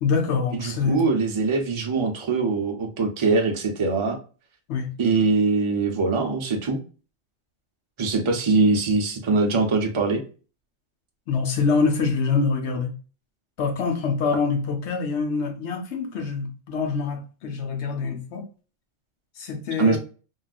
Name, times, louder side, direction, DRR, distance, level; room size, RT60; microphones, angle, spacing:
voice 1, 0.0-1.0 4.7-4.9 11.3-12.9 13.6-18.4 19.4-20.0, left 5 dB, 65° left, 1.0 m, -25 dB
voice 2, 0.6-4.2 5.0-6.8 8.0-10.2 19.8-20.0, right 3 dB, 50° right, 0.3 m, -22 dB
3.5 x 2.3 x 2.3 m
omnidirectional pair, 1.3 m